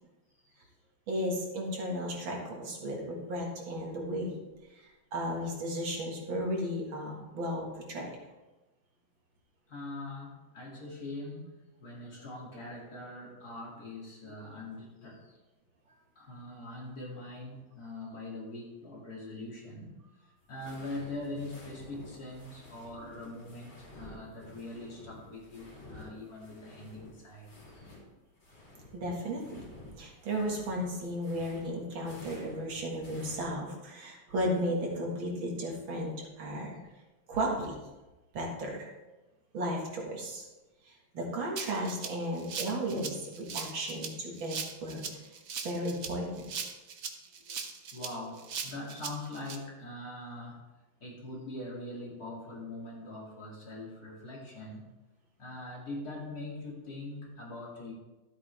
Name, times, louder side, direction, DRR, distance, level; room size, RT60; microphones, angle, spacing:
voice 1, 1.1-4.3 4.7-8.1 28.9-36.8 37.3-37.8 38.3-38.9 39.5-40.5 40.9-45.1 45.6-46.5, equal, 75° right, -1 dB, 2.5 m, -34 dB
voice 2, 9.7-15.4 16.2-19.9 20.5-27.8 47.0-47.1 47.5-50.6 51.0-54.9 55.4-57.9, left 2 dB, 45° left, -4 dB, 2.8 m, -42 dB
sound 1, 20.4-28.0 28.3-33.5, left 1 dB, 60° left, 3.7 m, -51 dB
Rattle (instrument), 41.6-49.6, right 6 dB, 55° right, 1.0 m, -39 dB
13.0 x 8.2 x 3.4 m, 1.1 s
omnidirectional pair, 2.2 m